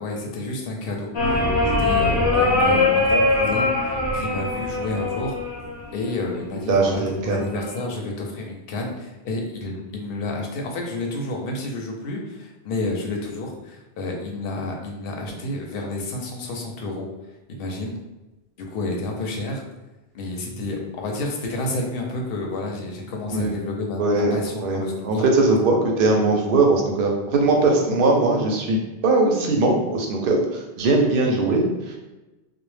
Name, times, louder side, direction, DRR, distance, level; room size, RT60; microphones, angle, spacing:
voice 1, 0.0-1.4 1.7-5.4 5.9-17.1 17.5-18.0 18.6-19.6 20.1-25.3, left 2 dB, 65° left, 1 dB, 0.7 m, -30 dB
sound 1, 1.1-6.2 7.3-7.8, left 2 dB, 30° left, 0.5 m, -22 dB
voice 2, 6.7-7.4 23.3-23.5 24.0-24.4 24.6-32.0, right 2 dB, 65° right, 0 dB, 0.7 m, -20 dB
2.1 x 2.1 x 3.1 m, 1.1 s
omnidirectional pair, 1.1 m